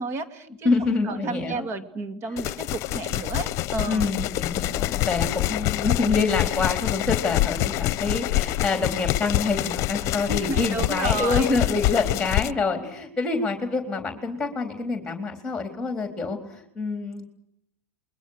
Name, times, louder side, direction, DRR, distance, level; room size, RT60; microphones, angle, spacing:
voice 1, 0.0-4.1 10.3-11.5, right 3 dB, 35° right, 9 dB, 2.6 m, -32 dB
voice 2, 0.6-1.7 3.9-17.2, left 4 dB, 10° left, 5 dB, 3.8 m, -26 dB
sound 1, 2.4-12.5, left 16 dB, 45° left, 1.1 m, -26 dB
29.0 x 22.0 x 6.5 m, 0.69 s
hypercardioid pair, 110°, 8 cm